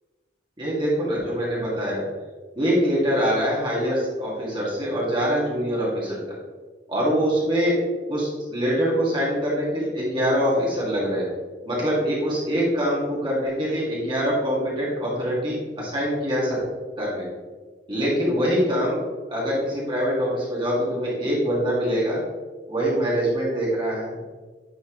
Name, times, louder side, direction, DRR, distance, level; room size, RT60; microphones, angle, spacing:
voice 1, 0.6-2.0 2.6-6.2 6.9-7.7 8.1-11.2 11.7-16.6 17.0-17.2 17.9-19.0 19.3-22.2 22.7-24.2, equal, 25° right, -6 dB, 1.8 m, -24 dB
9.2 x 4.5 x 3.0 m, 1.4 s
head